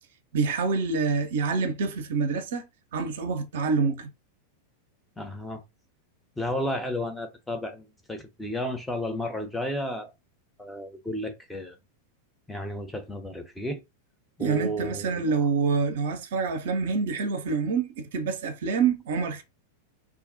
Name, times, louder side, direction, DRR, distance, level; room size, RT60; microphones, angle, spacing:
voice 1, 0.3-2.7 2.9-4.1 14.4-19.4, right 5 dB, 55° right, 0.4 m, -26 dB
voice 2, 5.2-5.6 6.4-10.1 10.6-11.8 12.5-13.8 14.4-15.4, equal, 5° left, 0.5 m, -32 dB
2.4 x 2.0 x 2.5 m
figure-of-eight pair, 90°, 0 cm